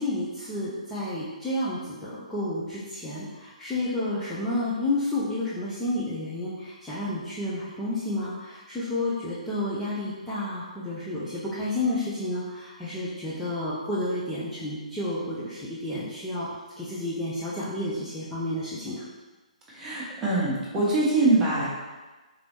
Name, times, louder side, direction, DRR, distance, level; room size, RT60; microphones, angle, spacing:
voice 1, 0.0-16.5 16.8-19.0, left 1 dB, 5° left, -10 dB, 0.5 m, -30 dB
voice 2, 19.7-21.7, right 2 dB, 15° right, -7 dB, 1.1 m, -23 dB
4.0 x 3.0 x 3.1 m, 1.2 s
figure-of-eight pair, 130°, 4 cm